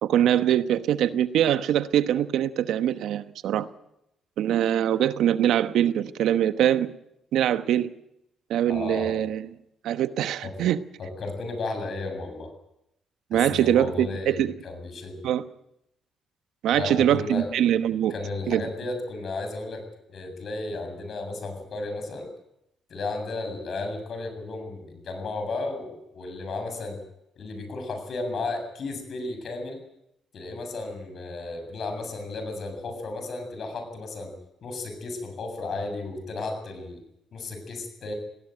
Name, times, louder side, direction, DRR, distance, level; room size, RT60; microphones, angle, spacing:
voice 1, 0.0-3.7 4.4-6.9 7.3-7.9 8.5-9.5 9.8-10.8 13.3-14.5 15.2-15.5 16.6-18.1 18.5-18.6, right 11 dB, 80° right, 12 dB, 1.0 m, -23 dB
voice 2, 8.7-9.2 10.4-10.5 11.0-12.5 13.3-15.2 16.7-17.5 18.1-22.3 22.9-27.0 27.4-29.8 30.3-34.3 34.6-37.0 37.3-38.1, left 3 dB, 55° left, 6 dB, 7.3 m, -34 dB
19.5 x 17.5 x 9.2 m, 0.82 s
cardioid pair, 90°, 0 cm